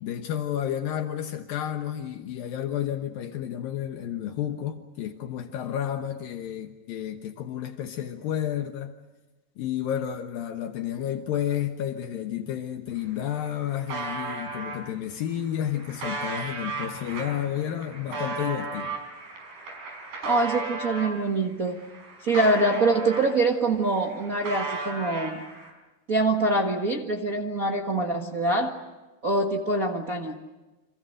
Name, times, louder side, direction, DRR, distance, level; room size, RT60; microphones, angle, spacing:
voice 1, 0.0-8.9 9.6-19.0, left 10 dB, 75° left, 5 dB, 2.9 m, -31 dB
sound 1, 12.9-13.0 13.2-14.8 15.4-21.2 21.6-23.6 23.9-25.7, right 3 dB, 80° right, 7.2 m, -35 dB
voice 2, 20.2-21.8 22.2-25.4 26.1-28.8 29.2-30.4, right 2 dB, 45° right, 1 dB, 1.1 m, -24 dB
29.5 x 26.5 x 6.5 m, 1.1 s
omnidirectional pair, 4.2 m